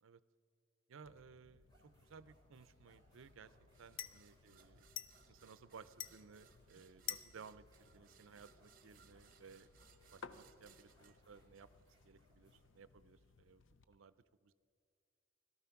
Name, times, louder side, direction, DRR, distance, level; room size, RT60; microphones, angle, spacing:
voice 1, 0.9-4.9 5.3-9.7 10.1-11.7 12.0-14.2 14.4-14.5, right 5 dB, 80° right, 15 dB, 0.5 m, -59 dB
sound 1, 1.0-13.8, left 9 dB, 70° left, 0.6 m, -54 dB
sound 2, 1.7-13.9, equal, 20° left, 4.0 m, -75 dB
sound 3, 3.7-12.2, right 6 dB, 45° right, 0.9 m, -68 dB
17.5 x 12.5 x 5.8 m, 2.4 s
head